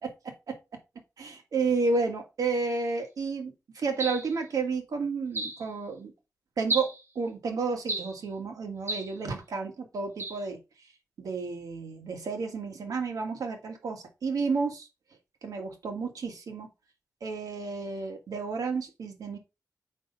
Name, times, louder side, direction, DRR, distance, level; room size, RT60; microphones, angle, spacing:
voice 1, 1.2-6.1 6.6-10.6 11.2-14.9 15.4-16.7 17.2-19.4, right 4 dB, 80° right, 3 dB, 1.8 m, -31 dB
sound 1, 4.0-4.4 5.3-5.6 6.7-7.0 7.9-8.2 8.9-9.2 10.2-10.4, right 2 dB, 45° right, 1.9 m, -32 dB
6.3 x 5.5 x 4.0 m, 0.26 s
wide cardioid pair, 95°, 6 cm